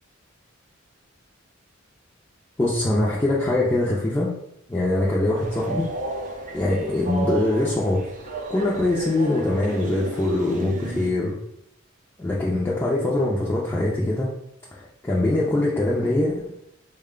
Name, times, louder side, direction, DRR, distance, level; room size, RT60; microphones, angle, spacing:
voice 1, 2.6-4.3 4.7-5.9 6.5-8.1 8.5-11.4 12.2-14.3 14.7-16.5, left 2 dB, 15° left, -6 dB, 0.5 m, -23 dB
Train, 5.4-11.1, right 2 dB, 40° right, 0.5 m, -33 dB
4.1 x 2.2 x 3.6 m, 0.77 s
head